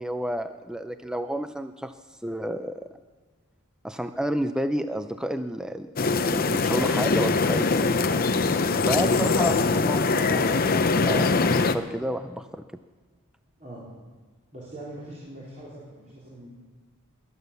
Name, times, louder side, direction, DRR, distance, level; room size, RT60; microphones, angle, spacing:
voice 1, 0.0-1.9 2.2-2.9 3.8-5.9 6.2-8.2 8.8-12.6, right 1 dB, 5° right, 9 dB, 0.4 m, -31 dB
sound 1, 6.0-11.8, left 4 dB, 40° left, 0.7 m, -22 dB
voice 2, 14.5-16.5, right 1 dB, 35° right, -7 dB, 4.0 m, -42 dB
21.5 x 8.3 x 6.9 m, 1.4 s
head